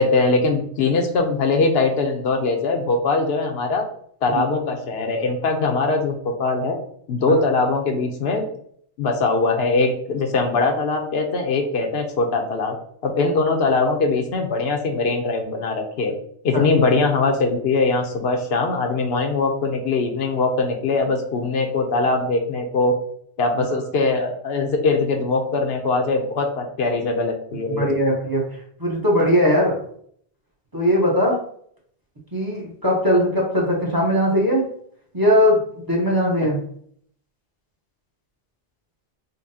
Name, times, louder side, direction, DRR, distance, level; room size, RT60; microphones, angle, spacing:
voice 1, 0.0-3.8 4.2-6.8 7.1-8.5 9.0-12.8 13.0-16.1 16.4-22.9 23.4-27.9, left 3 dB, 75° left, 3 dB, 0.9 m, -21 dB
voice 2, 27.7-28.4 28.8-29.8 30.7-31.4 32.3-34.6 35.1-36.6, equal, 25° right, -3 dB, 0.7 m, -19 dB
5.3 x 2.1 x 2.7 m, 0.63 s
omnidirectional pair, 1.0 m